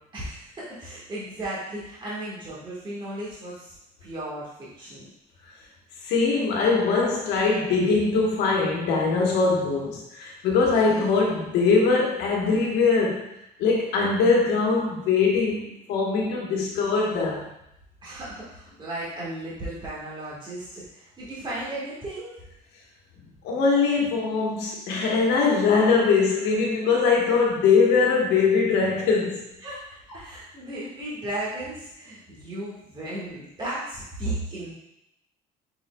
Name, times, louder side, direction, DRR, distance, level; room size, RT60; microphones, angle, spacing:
voice 1, 0.1-3.7 4.0-5.1 18.0-22.3 29.6-29.8 30.1-34.7, right 1 dB, 25° right, -8 dB, 1.5 m, -35 dB
voice 2, 6.0-13.3 13.6-15.6 15.9-17.5 23.4-29.4, left 4 dB, 85° left, -2 dB, 1.1 m, -22 dB
5.3 x 3.9 x 2.2 m, 0.81 s
cardioid pair, 110°, 17 cm